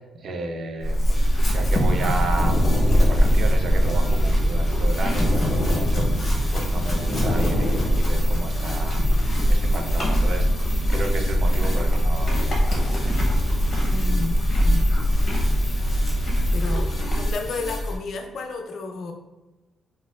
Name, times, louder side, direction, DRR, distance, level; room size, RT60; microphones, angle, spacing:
voice 1, 0.1-2.7 3.0-10.5 10.9-13.4, right 2 dB, 50° right, 5 dB, 0.4 m, -33 dB
Chewing mastication / Livestock farm animals working animals, 0.8-17.4, equal, 40° left, 0.9 m, -22 dB
sound 1, 1.1-18.0, left 1 dB, 10° left, 0.9 m, -32 dB
sound 2, 2.3-4.2 5.1-8.4, left 1 dB, 10° right, 1.1 m, -28 dB
voice 2, 13.8-14.4 14.6-14.9 16.5-19.1, left 3 dB, 60° left, 4 dB, 0.5 m, -32 dB
4.1 x 2.5 x 2.4 m, 1.1 s
cardioid pair, 125°, 0 cm